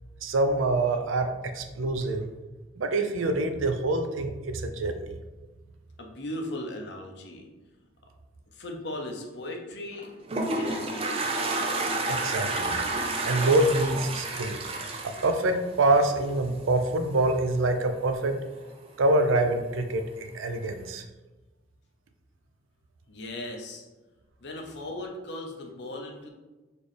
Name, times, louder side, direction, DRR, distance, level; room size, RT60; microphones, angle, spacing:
voice 1, 0.2-2.3 2.8-5.1 12.1-12.8 13.2-14.6 15.0-18.4 19.0-21.0, right 2 dB, 85° right, 7 dB, 0.5 m, -25 dB
voice 2, 6.0-7.5 8.5-10.1 10.4-11.5 23.1-23.8 24.4-26.3, left 1 dB, 60° left, 1 dB, 0.7 m, -38 dB
Toilet flush, 9.9-16.3, right 2 dB, 30° right, 0.4 m, -30 dB
4.2 x 3.2 x 3.4 m, 1.2 s
head